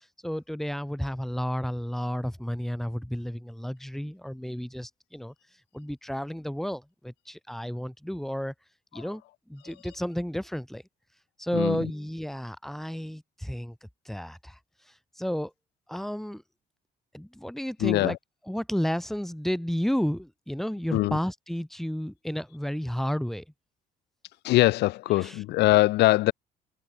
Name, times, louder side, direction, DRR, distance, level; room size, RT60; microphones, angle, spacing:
voice 1, 0.2-5.3 5.7-8.5 8.9-9.2 9.5-10.8 11.4-14.6 15.2-15.5 15.9-16.4 17.1-18.2 18.5-23.4 25.2-25.4, equal, ahead, 3.8 m, -32 dB
voice 2, 11.5-11.8 17.8-18.2 20.9-21.2 24.4-26.3, left 18 dB, 80° left, 1.1 m, -22 dB
cardioid pair, 110°, 17 cm